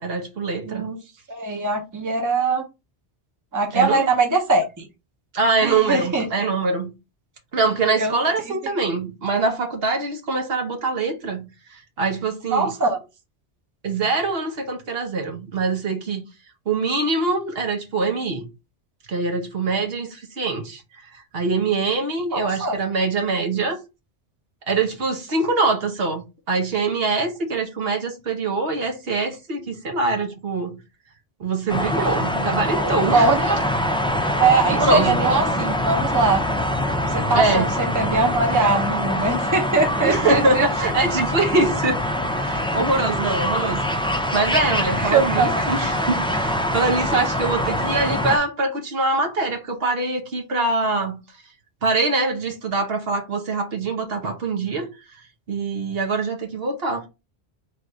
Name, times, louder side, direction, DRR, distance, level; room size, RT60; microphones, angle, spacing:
voice 1, 0.0-0.9 3.7-4.1 5.3-6.9 7.5-11.5 11.7-12.7 13.8-16.2 16.7-18.4 19.1-20.8 21.3-23.8 24.7-26.2 26.5-30.8 31.4-33.3 34.2-34.4 34.8-35.2 37.3-37.7 40.0-42.0 42.4-43.8 44.1-51.2 51.8-54.9 55.5-57.1, right 3 dB, 65° right, 1.1 m, -23 dB
voice 2, 0.6-1.0 1.3-2.6 3.5-4.9 5.6-6.3 8.0-8.1 8.5-8.6 12.5-13.0 22.3-22.8 32.7-33.6 34.4-36.4 37.0-40.7 45.0-45.6, right 3 dB, 20° right, 0.8 m, -21 dB
sound 1, 31.7-48.4, equal, 10° left, 0.3 m, -24 dB
3.4 x 2.6 x 4.5 m
omnidirectional pair, 1.1 m